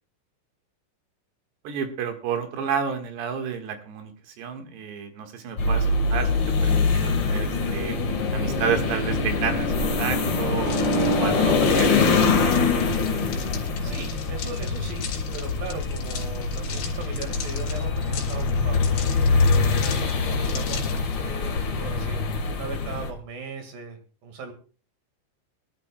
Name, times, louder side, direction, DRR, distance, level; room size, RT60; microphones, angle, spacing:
voice 1, 1.7-4.1 4.4-6.3 6.6-8.0 8.3-12.8, right 7 dB, 75° right, 5 dB, 3.6 m, -31 dB
sound 1, 5.6-23.1, left 4 dB, 60° left, 1.4 m, -24 dB
sound 2, 10.6-21.1, left 7 dB, 80° left, 4.6 m, -39 dB
voice 2, 13.8-19.0 19.7-20.9 21.2-24.5, right 4 dB, 60° right, 6 dB, 3.3 m, -38 dB
23.5 x 12.0 x 2.3 m, 0.36 s
omnidirectional pair, 5.1 m